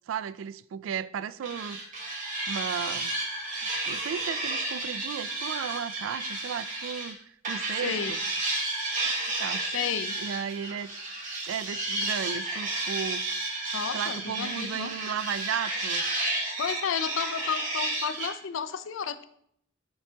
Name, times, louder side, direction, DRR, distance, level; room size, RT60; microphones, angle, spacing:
voice 1, 0.1-1.8 2.5-3.1 3.9-7.2 7.5-8.2 9.1-9.7 10.2-10.9 11.4-13.4 13.9-16.1, right 8 dB, 80° right, 0.3 m, -35 dB
sound 1, 1.4-7.1 7.4-18.3, right 2 dB, 40° right, 1.8 m, -32 dB
voice 2, 7.8-8.1 9.7-10.2 13.7-14.9 16.6-19.2, left 7 dB, 80° left, 0.5 m, -32 dB
8.5 x 6.7 x 2.8 m
head